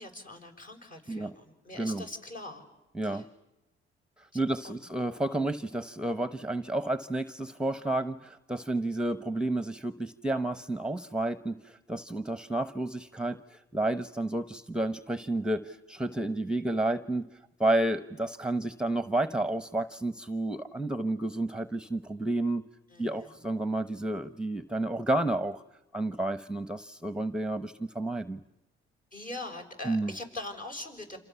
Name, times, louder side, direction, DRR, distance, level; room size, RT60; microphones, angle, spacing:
voice 1, 0.0-2.6 3.0-3.2 4.6-4.8 22.9-23.3 29.1-31.2, left 2 dB, 40° left, 4 dB, 6.1 m, -42 dB
voice 2, 2.9-3.3 4.3-17.3 17.6-22.6 23.0-25.6 25.9-28.4 29.8-30.1, right 1 dB, 5° right, 13 dB, 1.0 m, -31 dB
29.5 x 27.5 x 7.0 m, 0.95 s
cardioid pair, 90°, 20 cm